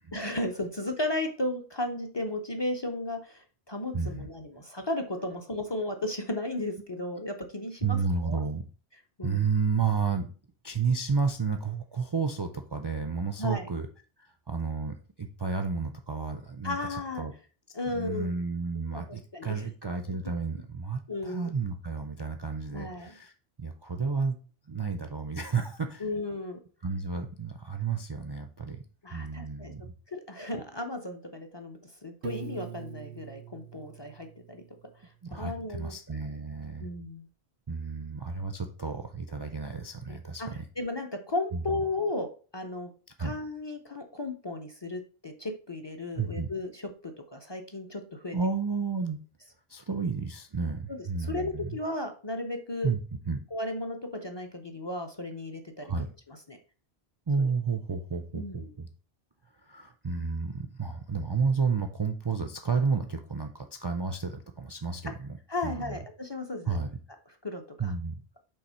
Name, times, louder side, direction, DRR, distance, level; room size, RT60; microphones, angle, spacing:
voice 1, 0.1-8.0 8.2-8.4 9.2-9.5 13.4-13.7 16.6-17.3 17.7-18.3 19.1-19.6 21.1-21.5 22.7-23.2 26.0-26.6 29.0-29.7 30.1-34.6 35.3-35.9 36.8-37.3 40.1-40.5 40.8-42.9 43.2-48.4 50.9-52.9 53.5-55.9 56.3-56.6 57.4-57.5 58.3-58.7 65.5-66.8 67.4-67.9, left 2 dB, 30° left, 4 dB, 0.6 m, -35 dB
voice 2, 3.9-4.3 7.8-8.6 9.2-10.3 10.6-13.9 14.2-17.3 17.9-23.3 23.6-24.3 24.7-26.1 26.8-28.8 29.1-29.9 35.2-36.9 37.7-40.7 41.5-41.8 43.2-43.3 46.2-46.5 48.3-49.2 49.7-51.8 52.8-53.0 53.3-53.4 55.8-56.1 57.3-58.9 59.6-65.4 65.6-66.0 66.7-66.9 67.8-68.1, right 5 dB, 35° right, 6 dB, 0.4 m, -31 dB
Piano, 32.2-35.2, right 7 dB, 80° right, 0.9 m, -43 dB
5.6 x 3.6 x 5.5 m, 0.38 s
omnidirectional pair, 1.1 m